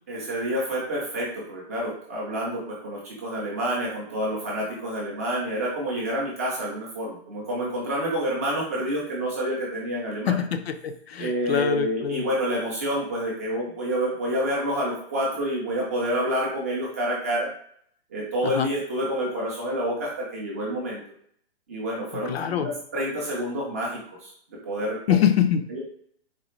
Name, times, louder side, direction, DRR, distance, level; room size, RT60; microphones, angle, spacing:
voice 1, 0.1-10.4 11.2-17.5 18.1-21.0 21.7-24.3 24.6-25.2 25.7-25.8, equal, 15° right, -5 dB, 0.3 m, -28 dB
voice 2, 10.3-12.2 18.4-18.7 22.3-22.7 25.1-25.7, left 9 dB, 70° left, 8 dB, 0.6 m, -24 dB
4.0 x 2.3 x 3.0 m, 0.64 s
hypercardioid pair, 155°, 32 cm